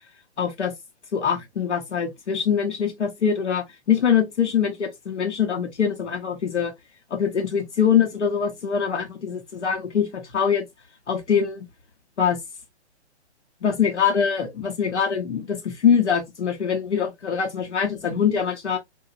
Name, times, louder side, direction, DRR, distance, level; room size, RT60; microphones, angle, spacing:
voice 1, 0.4-0.7 1.1-6.7 7.1-10.6 11.1-11.6 12.2-12.4 13.6-18.8, left 7 dB, 80° left, 0.8 m, -23 dB
2.9 x 2.3 x 2.4 m
figure-of-eight pair, 130°, 34 cm